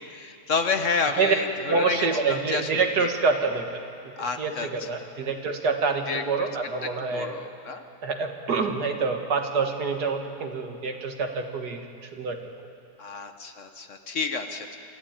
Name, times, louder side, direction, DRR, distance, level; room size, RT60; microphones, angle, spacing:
voice 1, 0.1-3.1 4.2-4.9 6.1-6.5 6.8-7.8 13.0-14.8, left 4 dB, 50° left, 7 dB, 1.4 m, -30 dB
voice 2, 1.7-4.1 4.4-7.3 8.0-12.4, right 4 dB, 80° right, 4 dB, 2.2 m, -27 dB
26.5 x 14.5 x 8.9 m, 2.5 s
omnidirectional pair, 1.7 m